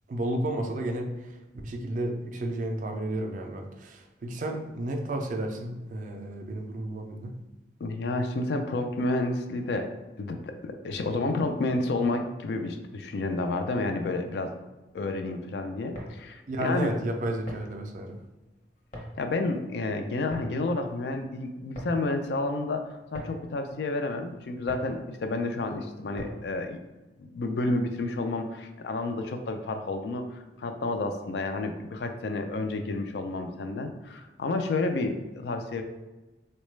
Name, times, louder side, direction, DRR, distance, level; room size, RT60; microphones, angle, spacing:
voice 1, 0.1-1.4 1.6-7.3 16.5-18.2, right 1 dB, 45° right, 4 dB, 0.4 m, -32 dB
voice 2, 7.8-9.9 10.2-14.5 14.9-16.9 19.2-26.8 27.2-35.8, left 2 dB, 70° left, 6 dB, 0.4 m, -30 dB
sound 1, 15.8-26.6, equal, 45° left, 0.7 m, -45 dB
3.8 x 2.2 x 3.1 m, 1.1 s
head